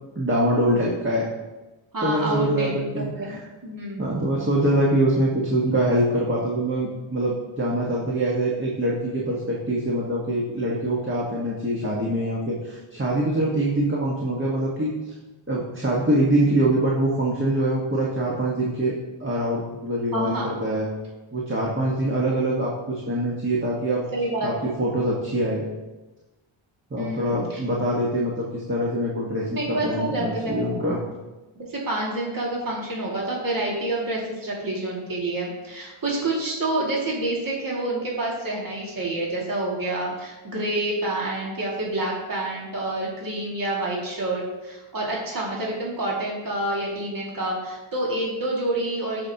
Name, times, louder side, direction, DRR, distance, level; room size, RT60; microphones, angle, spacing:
voice 1, 0.1-1.3 2.0-3.4 4.0-15.1 15.5-18.9 19.2-20.9 21.3-24.0 24.4-24.5 24.8-25.6 26.9-31.0, right 1 dB, 25° right, -5 dB, 1.4 m, -24 dB
voice 2, 1.9-3.4 3.6-4.1 20.1-20.6 24.1-24.7 27.0-27.6 29.5-30.8 31.6-49.3, right 2 dB, 40° right, -4 dB, 2.2 m, -28 dB
12.0 x 5.3 x 2.9 m, 1.1 s
cardioid pair, 85°, 50 cm